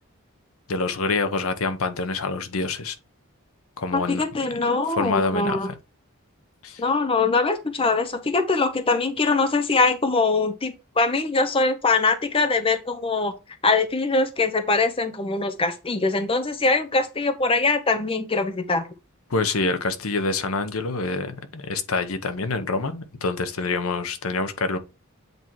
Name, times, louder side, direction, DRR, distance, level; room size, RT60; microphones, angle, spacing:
voice 1, 0.7-3.0 3.8-4.2 5.0-5.7 6.6-6.8 19.3-24.8, left 3 dB, 75° left, 0.9 m, -26 dB
voice 2, 3.9-5.7 6.8-13.3 13.6-18.9, left 3 dB, 25° left, 0.6 m, -22 dB
8.1 x 2.9 x 4.5 m
head